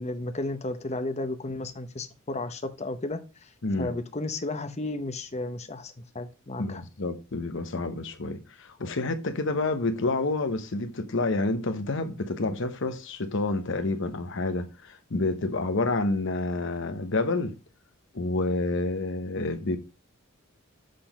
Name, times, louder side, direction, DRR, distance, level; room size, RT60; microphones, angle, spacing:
voice 1, 0.0-3.5 3.8-6.8, left 2 dB, 30° left, 0.7 m, -33 dB
voice 2, 6.6-17.6 18.1-19.8, left 2 dB, 60° left, 0.9 m, -29 dB
6.7 x 3.9 x 5.1 m
head